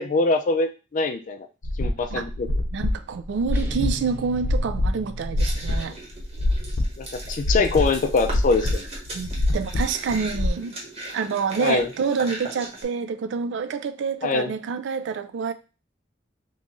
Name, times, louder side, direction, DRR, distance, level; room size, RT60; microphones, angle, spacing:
voice 1, 0.0-1.5 1.8-2.5 7.0-8.9 11.6-11.9 14.2-14.5, left 3 dB, 45° left, 0.4 m, -23 dB
sound 1, 1.6-5.8 6.1-10.5, left 1 dB, 85° left, 0.7 m, -25 dB
voice 2, 2.7-6.0 9.1-10.7 11.1-15.5, right 5 dB, 70° right, 0.4 m, -27 dB
sound 2, 3.5-6.1, right 4 dB, 15° right, 0.6 m, -40 dB
sound 3, 5.4-12.8, right 2 dB, 35° right, 1.0 m, -38 dB
3.0 x 2.5 x 3.5 m
head